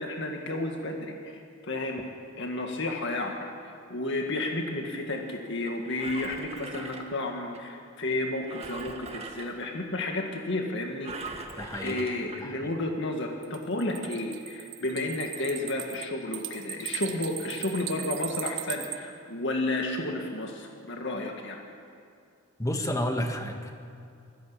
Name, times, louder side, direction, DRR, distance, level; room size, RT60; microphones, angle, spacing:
voice 1, 0.0-2.0 2.4-3.4 3.6-11.1 11.8-21.6, left 2 dB, 60° left, 2 dB, 1.9 m, -32 dB
Engine, 5.7-7.6 8.5-9.7 11.0-12.4 13.1-13.2, right 3 dB, 30° right, 1.8 m, -41 dB
voice 2, 11.6-12.0 12.4-12.7 22.6-23.7, left 1 dB, 15° left, 4 dB, 1.7 m, -31 dB
sound 1, 13.4-19.0, right 12 dB, 65° right, 1.5 m, -37 dB
20.0 x 15.5 x 8.6 m, 2.4 s
head